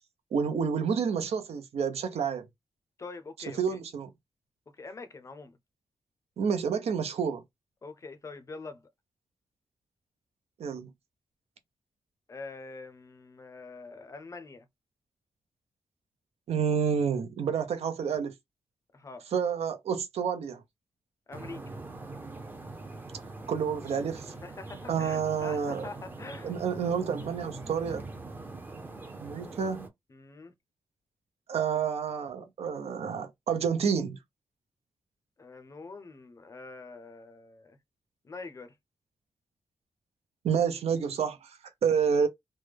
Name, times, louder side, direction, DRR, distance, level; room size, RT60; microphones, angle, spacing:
voice 1, 0.3-2.5 3.6-4.1 6.4-7.4 10.6-10.9 16.5-18.3 19.3-20.6 23.5-24.3 24.9-25.9 26.4-28.0 29.2-29.9 31.5-34.2 40.4-42.3, right 6 dB, 80° right, 0.7 m, -29 dB
voice 2, 3.0-3.8 4.7-5.6 7.8-8.8 12.3-14.7 18.9-19.3 21.3-21.7 24.4-26.6 30.1-30.5 35.4-37.8 38.2-38.7, left 3 dB, 30° left, 0.5 m, -44 dB
sound 1, 21.3-29.9, right 2 dB, 20° right, 0.6 m, -43 dB
3.3 x 2.1 x 3.3 m
wide cardioid pair, 180°, 11 cm